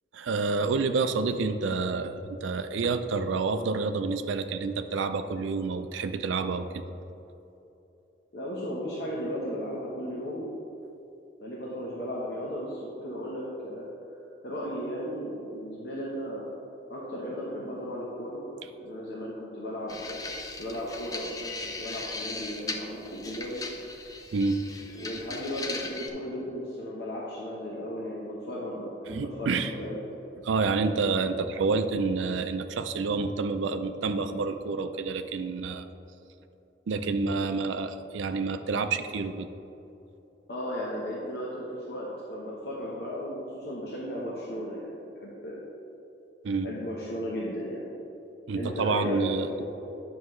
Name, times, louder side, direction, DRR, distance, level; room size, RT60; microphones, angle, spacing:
voice 1, 0.1-6.8 24.3-24.6 29.1-29.7 30.4-35.9 36.9-39.5 46.4-46.7 48.5-49.5, right 4 dB, 90° right, 9 dB, 0.4 m, -28 dB
voice 2, 8.3-10.6 11.4-13.9 14.4-16.5 16.9-18.4 18.8-23.6 25.0-30.0 40.5-45.6 46.6-47.9 48.5-49.3 49.6-49.7, equal, 60° left, -5 dB, 1.0 m, -35 dB
sound 1, 19.9-26.1, left 3 dB, 20° left, 0.5 m, -38 dB
9.4 x 6.1 x 3.1 m, 2.9 s
head